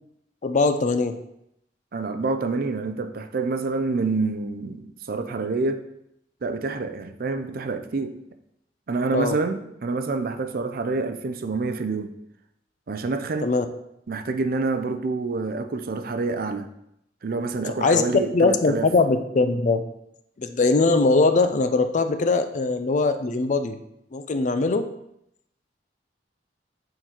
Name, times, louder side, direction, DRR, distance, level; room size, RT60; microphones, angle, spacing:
voice 1, 0.4-1.2 9.1-9.4 13.4-13.7 17.8-18.0 18.3-19.8 20.4-23.8 24.1-24.9, left 3 dB, 45° left, 9 dB, 0.4 m, -21 dB
voice 2, 1.9-5.9 6.4-8.2 8.9-12.1 12.9-13.5 14.1-16.7 17.2-18.9, right 3 dB, 55° right, 9 dB, 0.5 m, -27 dB
6.7 x 3.9 x 4.4 m, 0.79 s
head